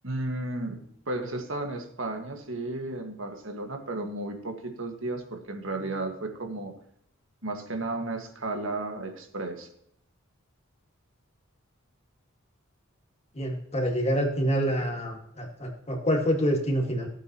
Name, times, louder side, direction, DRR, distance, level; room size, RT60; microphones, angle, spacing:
voice 1, 0.0-6.7 7.4-9.7, right 2 dB, 70° right, 4 dB, 1.8 m, -33 dB
voice 2, 13.4-17.1, equal, 30° left, 2 dB, 2.0 m, -27 dB
15.0 x 8.7 x 3.0 m, 0.71 s
head